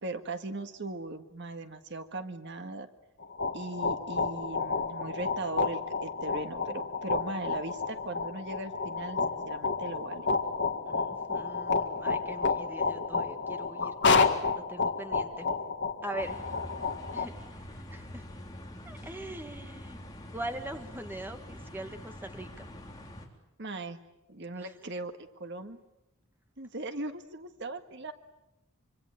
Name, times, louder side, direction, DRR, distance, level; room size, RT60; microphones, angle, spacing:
voice 1, 0.0-2.9 3.5-10.3 23.6-24.0 24.3-25.8 26.6-28.1, right 2 dB, 50° right, 8 dB, 1.7 m, -39 dB
sound 1, 3.2-17.3, left 4 dB, 55° left, 2.0 m, -30 dB
voice 2, 10.9-15.5 16.0-16.5 17.1-18.2 18.8-20.0 20.3-22.7 24.6-24.7, right 1 dB, 10° right, 6 dB, 1.8 m, -42 dB
sound 2, 16.2-23.3, left 1 dB, 15° left, 3.7 m, -45 dB
25.5 x 25.5 x 8.9 m, 0.89 s
head